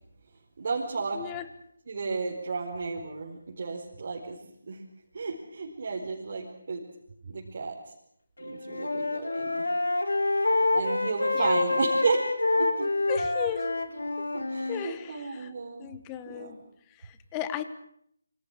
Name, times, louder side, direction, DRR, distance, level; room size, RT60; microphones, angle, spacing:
voice 1, 0.6-1.2 1.9-4.4 4.7-4.8 5.1-6.8 7.2-7.7 8.4-9.6 10.7-12.3 12.6-12.9 14.5-15.9 16.3-16.5, right 4 dB, 50° right, -2 dB, 5.0 m, -32 dB
voice 2, 1.1-1.4 11.3-11.5 13.1-13.7 14.2-14.3 14.7-15.5 15.8-16.6 16.9-17.6, left 11 dB, 15° left, 12 dB, 1.9 m, -36 dB
Wind instrument woodwind instrument, 8.4-14.9, left 2 dB, 80° left, 3.7 m, -27 dB
28.5 x 25.0 x 6.5 m, 0.71 s
figure-of-eight pair, 160°, 0 cm